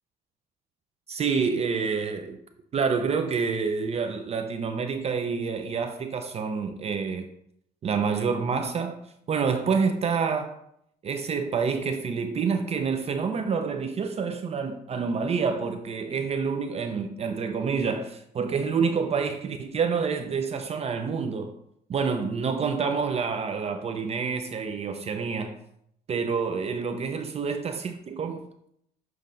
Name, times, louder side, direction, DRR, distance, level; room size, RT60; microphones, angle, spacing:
voice 1, 1.1-2.4 2.7-7.3 7.8-9.0 9.3-10.5 11.0-21.6 21.9-25.6 26.1-28.5, right 5 dB, 40° right, 0.5 m, -28 dB
7.5 x 3.2 x 5.2 m
cardioid pair, 110°, 17 cm